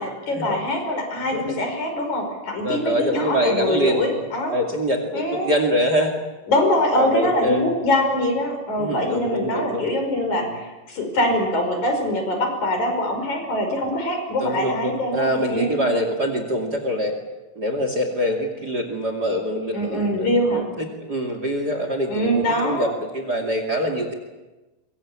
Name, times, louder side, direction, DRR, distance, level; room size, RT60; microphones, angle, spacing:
voice 1, 0.0-4.6 5.1-5.5 6.5-15.8 19.7-20.6 22.1-22.9, left 1 dB, 55° left, 4 dB, 6.7 m, -23 dB
voice 2, 2.6-4.2 4.5-6.1 6.9-7.7 8.8-9.9 10.4-10.6 14.4-17.1 17.6-22.9 23.1-24.1, equal, 30° right, 5 dB, 2.7 m, -24 dB
24.0 x 23.5 x 8.8 m, 1.1 s
omnidirectional pair, 4.0 m